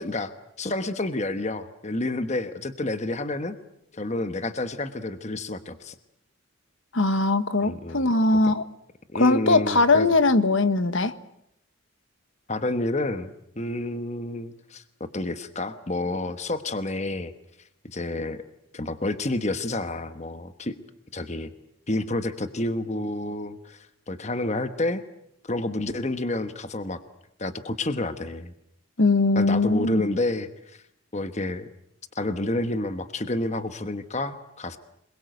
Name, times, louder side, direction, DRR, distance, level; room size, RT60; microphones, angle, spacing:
voice 1, 0.0-3.6 3.9-5.9 7.6-8.1 8.4-8.5 9.1-10.1 12.5-17.3 17.8-18.4 18.7-20.7 21.1-21.5 21.9-25.0 25.4-27.0 27.4-28.5 29.3-30.8 31.1-31.7 32.1-34.8, left 2 dB, 35° left, 10 dB, 1.2 m, -29 dB
voice 2, 6.9-8.6 9.1-11.1 29.0-30.0, left 2 dB, 65° left, 12 dB, 1.4 m, -21 dB
27.5 x 22.0 x 8.0 m, 0.78 s
head